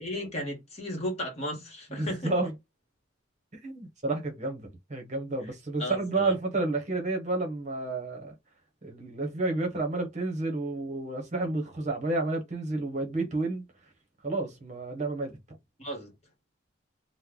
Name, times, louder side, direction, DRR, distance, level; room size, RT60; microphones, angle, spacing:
voice 1, 0.0-2.4 5.8-6.3 15.8-16.1, left 1 dB, 35° left, 1.3 m, -35 dB
voice 2, 1.9-2.5 3.6-8.3 8.8-13.6 14.2-15.3, right 2 dB, 35° right, 0.9 m, -30 dB
3.1 x 2.1 x 3.6 m
head